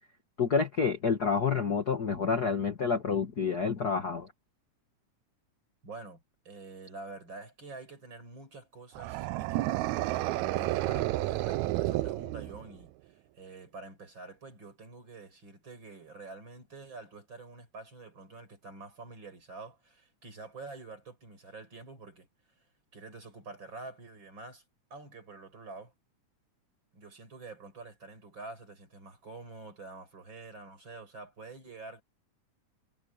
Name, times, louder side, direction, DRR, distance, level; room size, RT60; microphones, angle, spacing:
voice 1, 0.4-4.3, left 5 dB, 40° left, 1.8 m, -28 dB
voice 2, 5.8-22.3 22.9-24.6 24.9-25.9 26.9-32.0, right 3 dB, 35° right, 6.3 m, -47 dB
sound 1, 8.9-12.8, right 17 dB, 80° right, 1.8 m, -31 dB
omnidirectional pair, 3.6 m